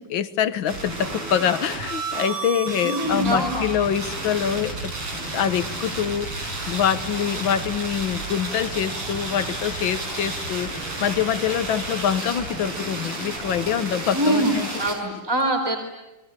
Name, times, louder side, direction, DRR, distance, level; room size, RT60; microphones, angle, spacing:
voice 1, 0.0-4.9 5.3-6.3 6.7-14.6, left 9 dB, 65° left, 13 dB, 1.9 m, -25 dB
sound 1, 0.7-14.9, right 2 dB, 85° right, 6.8 m, -31 dB
voice 2, 2.8-3.7 14.1-15.8, right 1 dB, 10° right, 3 dB, 3.9 m, -23 dB
29.5 x 22.5 x 9.0 m, 1.0 s
omnidirectional pair, 2.4 m